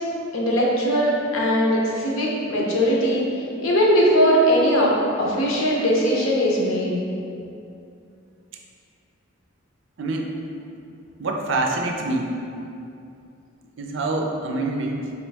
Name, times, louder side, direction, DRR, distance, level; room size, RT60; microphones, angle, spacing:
voice 1, 0.3-3.2 3.6-4.9 5.2-7.0, equal, 80° left, -4 dB, 0.8 m, -20 dB
voice 2, 10.0-10.3 11.2-12.3 13.8-15.1, right 2 dB, 60° right, 2 dB, 0.4 m, -25 dB
4.5 x 3.0 x 3.3 m, 2.6 s
head